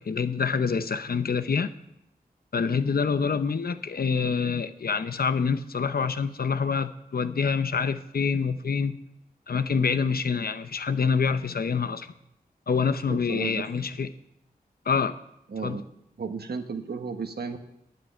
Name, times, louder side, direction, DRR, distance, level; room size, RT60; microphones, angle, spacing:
voice 1, 0.0-1.7 2.5-9.0 9.5-12.1 12.7-14.1 14.9-15.2 15.6-15.8, left 5 dB, 70° left, 11 dB, 0.7 m, -26 dB
voice 2, 13.1-13.6 15.5-15.9 16.2-17.6, right 5 dB, 80° right, 6 dB, 1.2 m, -34 dB
9.2 x 7.6 x 9.1 m, 0.82 s
wide cardioid pair, 60°, 16 cm